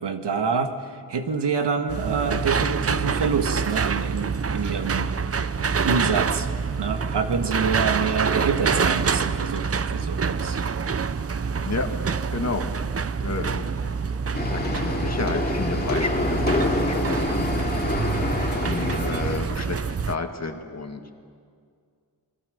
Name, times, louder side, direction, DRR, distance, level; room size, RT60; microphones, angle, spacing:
voice 1, 0.0-5.1 5.8-6.5 6.8-10.6, right 5 dB, 90° right, 6 dB, 1.8 m, -27 dB
sound 1, 1.9-20.2, right 5 dB, 35° right, 0.6 m, -26 dB
voice 2, 12.3-12.7 13.2-13.7 14.5-17.3 18.6-21.0, left 3 dB, 40° left, 4 dB, 1.8 m, -31 dB
sound 2, 14.3-19.4, left 2 dB, 25° left, 2.6 m, -26 dB
28.5 x 22.0 x 6.7 m, 2.2 s
wide cardioid pair, 130°, 40 cm